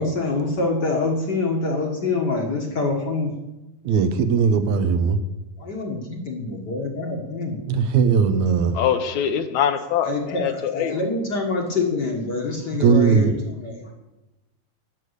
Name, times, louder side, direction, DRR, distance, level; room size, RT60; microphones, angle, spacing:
voice 1, 0.0-3.3 5.6-7.6 10.0-13.3 13.6-13.9, left 3 dB, 45° left, 1 dB, 1.5 m, -25 dB
voice 2, 3.9-5.2 7.7-8.8 12.7-13.4, right 6 dB, 75° right, 9 dB, 2.0 m, -19 dB
voice 3, 8.7-11.0, left 9 dB, 75° left, 8 dB, 2.0 m, -23 dB
12.0 x 6.3 x 8.1 m, 1.0 s
omnidirectional pair, 3.5 m